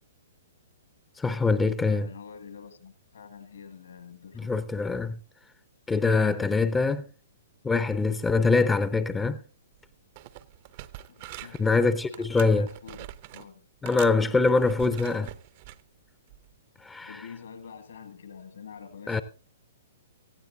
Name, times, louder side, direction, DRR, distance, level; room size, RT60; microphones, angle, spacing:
voice 1, 1.2-2.1 4.4-5.2 5.9-7.1 7.6-9.4 11.6-12.7 13.8-15.3 16.8-17.2 19.1-19.2, left 4 dB, 10° left, 0.6 m, -24 dB
voice 2, 1.8-4.6 11.1-11.6 12.1-13.1 13.3-13.7 14.8-15.3 17.0-19.2, left 6 dB, 65° left, 2.0 m, -46 dB
sound 1, 9.7-9.9 10.1-11.7 12.1-13.5 13.8-15.8 16.3-16.5, right 14 dB, 40° right, 0.7 m, -44 dB
17.0 x 15.0 x 2.7 m
figure-of-eight pair, 115°, 0 cm